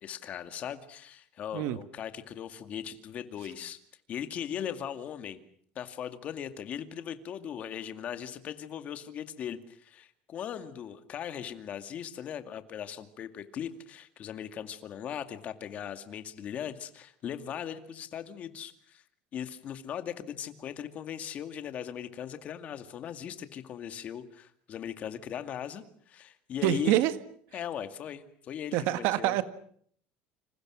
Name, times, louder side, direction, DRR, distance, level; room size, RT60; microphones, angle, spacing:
voice 1, 0.0-3.8 4.1-5.4 5.8-19.0 19.3-27.0 27.5-29.4, left 9 dB, 35° left, 9 dB, 2.2 m, -39 dB
voice 2, 26.6-27.1 28.7-29.4, right 14 dB, 60° right, 12 dB, 1.9 m, -26 dB
29.5 x 27.0 x 6.3 m, 0.62 s
cardioid pair, 165°, 4 cm